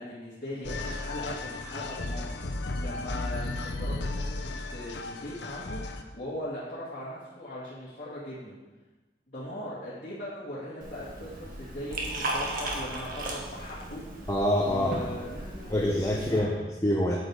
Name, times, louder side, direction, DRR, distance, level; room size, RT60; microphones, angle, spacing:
voice 1, 0.0-8.6 9.3-14.3 14.6-15.8 16.3-16.7, left 1 dB, 45° left, -11 dB, 2.4 m, -39 dB
sound 1, 0.6-6.0, left 2 dB, 85° left, 0.8 m, -34 dB
Liquid, 10.8-16.4, right 1 dB, 50° right, 1.7 m, -36 dB
voice 2, 14.3-15.0 15.7-16.5 16.8-17.2, left 1 dB, 15° left, -1 dB, 0.8 m, -25 dB
8.5 x 8.3 x 4.9 m, 1.2 s
head